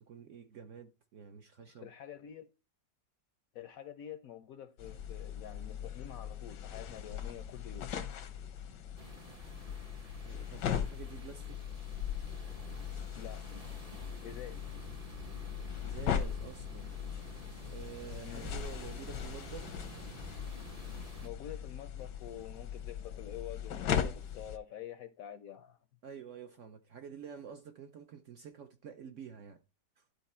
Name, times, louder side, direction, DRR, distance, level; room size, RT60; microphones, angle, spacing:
voice 1, 0.1-1.9 10.3-11.6 15.8-16.9 17.7-19.8 26.0-29.6 30.0-30.1, right 7 dB, 65° right, 0.8 m, -48 dB
voice 2, 1.6-2.5 3.5-7.9 13.1-13.5 14.2-14.7 18.2-18.6 21.2-25.8, left 10 dB, 70° left, 0.9 m, -47 dB
sound 1, 4.8-24.6, left 8 dB, 90° left, 1.5 m, -39 dB
sound 2, 9.0-21.3, right 2 dB, 30° right, 0.7 m, -51 dB
11.5 x 4.0 x 4.2 m
omnidirectional pair, 1.8 m